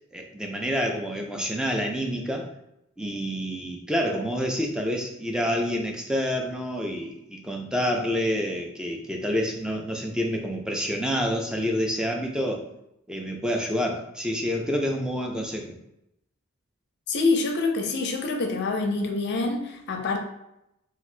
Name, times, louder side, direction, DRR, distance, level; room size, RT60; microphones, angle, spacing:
voice 1, 0.1-2.5 3.0-12.7 13.1-15.8, equal, 5° right, 1 dB, 0.3 m, -28 dB
voice 2, 17.1-20.2, left 3 dB, 50° left, 3 dB, 0.5 m, -26 dB
2.7 x 2.4 x 3.2 m, 0.83 s
head